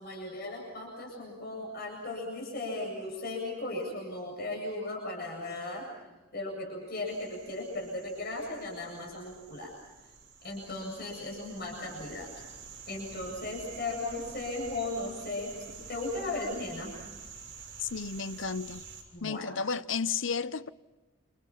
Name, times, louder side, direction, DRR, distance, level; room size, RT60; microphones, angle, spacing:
voice 1, 0.0-5.9 6.3-9.7 10.4-12.3 12.9-16.9 19.1-19.5, left 2 dB, 50° left, 7.9 m, -37 dB
sound 1, 7.1-19.0, right 6 dB, 60° right, 7.0 m, -48 dB
voice 2, 17.8-18.9 19.2-20.7, left 5 dB, 65° left, 0.8 m, -33 dB
29.0 x 28.5 x 5.8 m
head